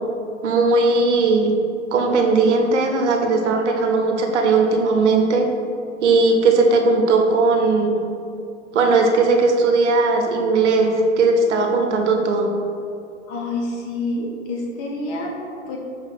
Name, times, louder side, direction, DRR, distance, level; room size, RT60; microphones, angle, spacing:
voice 1, 0.4-1.5 1.9-5.5 6.0-7.9 8.7-12.5, right 3 dB, 70° right, 2 dB, 0.7 m, -18 dB
voice 2, 13.3-15.8, left 2 dB, 25° left, -1 dB, 0.4 m, -28 dB
5.3 x 3.2 x 2.4 m, 2.6 s
hypercardioid pair, 110°, 36 cm